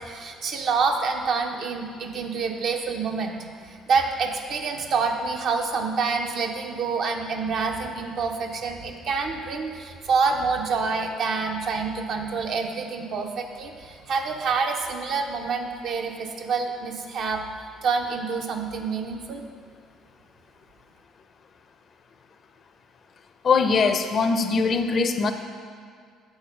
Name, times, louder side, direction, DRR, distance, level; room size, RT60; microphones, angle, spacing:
voice 1, 0.0-17.4 17.8-19.4, right 4 dB, 60° right, 3 dB, 0.7 m, -27 dB
voice 2, 23.4-25.3, left 4 dB, 50° left, 8 dB, 0.5 m, -21 dB
7.1 x 4.2 x 5.2 m, 2.1 s
hypercardioid pair, 60°, 0 cm